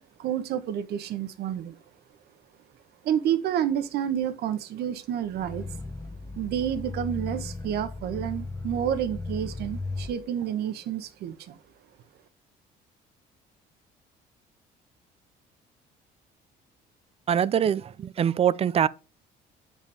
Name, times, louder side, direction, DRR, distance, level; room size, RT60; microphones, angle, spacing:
voice 1, 0.2-1.8 3.0-5.6 6.4-11.5, right 10 dB, 75° right, 1.1 m, -29 dB
Growling, 5.2-10.2, left 3 dB, 20° left, 1.3 m, -36 dB
voice 2, 17.3-18.9, right 9 dB, 35° right, 0.5 m, -23 dB
7.4 x 7.2 x 3.5 m
cardioid pair, 110°, 17 cm